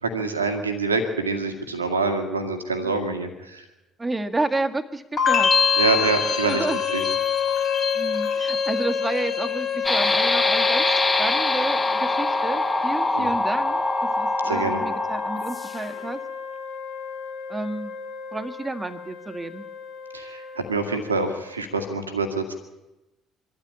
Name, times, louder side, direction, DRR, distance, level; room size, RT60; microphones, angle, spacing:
voice 1, 0.0-3.6 5.8-6.6 6.9-7.0 13.1-13.3 14.4-14.8 20.1-22.5, right 3 dB, 85° right, 7 dB, 2.0 m, -26 dB
voice 2, 2.8-3.2 4.0-5.5 6.4-6.8 7.9-16.2 17.5-17.9 18.3-19.7, right 2 dB, 15° right, 9 dB, 1.8 m, -30 dB
sound 1, 5.2-10.2 10.5-11.1, left 6 dB, 40° left, 3.7 m, -26 dB
sound 2, 5.3-21.6, left 7 dB, 65° left, 2.9 m, -30 dB
sound 3, 9.8-16.0, left 2 dB, 15° left, 2.2 m, -24 dB
24.5 x 13.5 x 8.5 m, 0.99 s
figure-of-eight pair, 50°, 0 cm